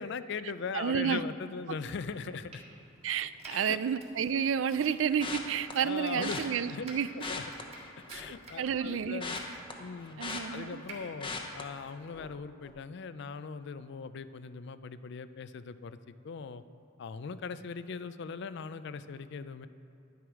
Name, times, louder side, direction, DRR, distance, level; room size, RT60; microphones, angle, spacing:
voice 1, 0.0-2.6 3.5-3.8 5.8-6.8 7.2-7.4 8.1-9.4 9.8-10.2 10.5-16.6 17.0-19.7, left 5 dB, 60° left, 13 dB, 0.4 m, -40 dB
voice 2, 0.7-1.2 3.0-7.1 8.1-8.2 8.6-9.2 10.2-10.8, right 7 dB, 75° right, 14 dB, 0.4 m, -30 dB
Domestic sounds home sounds, 1.7-12.3, right 2 dB, 35° right, 1.8 m, -53 dB
sound 1, 5.2-5.7 6.2-6.4 7.1-8.4 8.7-10.9 11.2-11.6 12.1-12.4 12.6-12.7, left 4 dB, 25° left, 0.9 m, -39 dB
11.0 x 9.3 x 4.8 m, 2.8 s
head